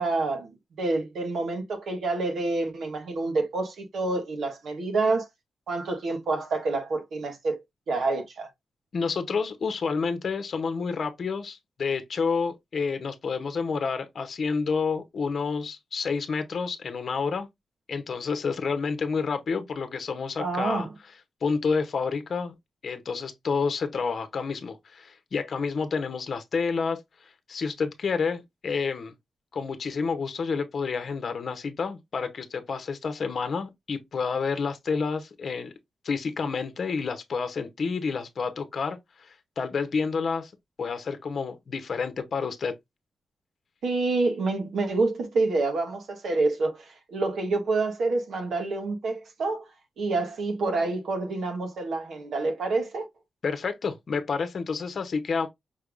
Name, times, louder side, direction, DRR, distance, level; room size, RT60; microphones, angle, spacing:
voice 1, 0.0-5.3 5.7-7.6 7.9-8.5 20.4-20.9 43.8-49.7 50.0-53.1, right 3 dB, 80° right, 1.3 m, -27 dB
voice 2, 8.9-17.5 17.9-20.9 21.4-22.5 22.8-27.0 27.5-29.1 29.5-35.7 36.0-40.5 40.8-42.8 53.4-55.5, left 5 dB, 55° left, 0.8 m, -29 dB
5.4 x 3.4 x 2.5 m
wide cardioid pair, 130°, 0 cm